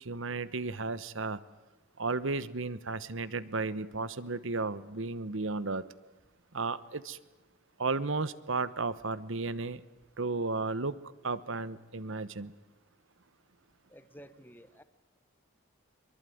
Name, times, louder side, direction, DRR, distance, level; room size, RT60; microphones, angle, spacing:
voice 1, 0.0-1.4 2.0-5.8 6.5-7.2 7.8-9.8 10.2-11.0 11.2-12.5, right 3 dB, 65° right, 17 dB, 1.0 m, -34 dB
voice 2, 13.9-14.8, equal, 10° left, 11 dB, 1.3 m, -52 dB
23.5 x 23.0 x 9.4 m, 1.1 s
head